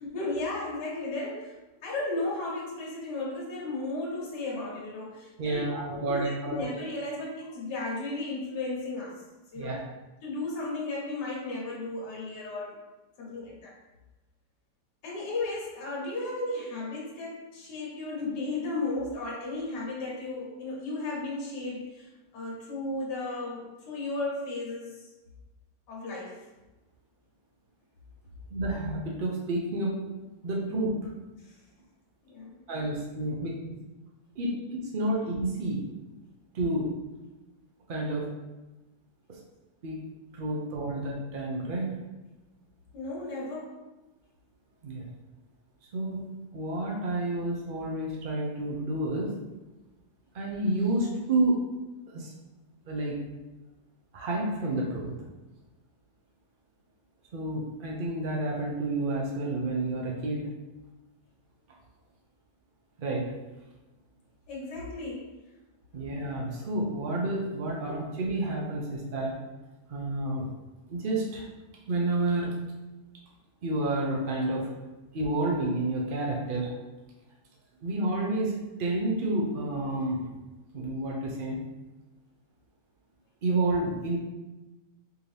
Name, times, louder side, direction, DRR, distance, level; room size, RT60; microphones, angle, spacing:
voice 1, 0.0-9.2 9.5-9.8 10.2-12.8 13.2-13.7 15.0-25.1 25.9-26.4 31.4-31.5 32.2-32.6 32.9-33.0 33.4-33.5 40.6-41.0 42.9-43.9 64.5-65.3 65.9-66.1, left 2 dB, 80° left, -4 dB, 1.5 m, -35 dB
voice 2, 5.4-6.6 9.5-9.8 28.5-30.0 30.4-31.0 32.7-33.5 34.4-34.5 34.9-35.8 36.5-36.9 37.9-38.3 39.3-39.4 39.8-40.0 40.3-42.0 44.8-45.1 45.9-49.4 50.3-51.6 52.1-52.3 52.9-53.2 54.1-55.1 57.3-60.5 63.0-63.3 65.9-69.4 69.9-70.5 70.9-71.5 71.8-72.5 73.6-74.7 75.1-76.7 77.8-80.3 80.7-81.6 83.4-84.2, right 2 dB, 80° right, -3 dB, 0.4 m, -30 dB
4.6 x 2.8 x 3.3 m, 1.1 s
omnidirectional pair, 1.8 m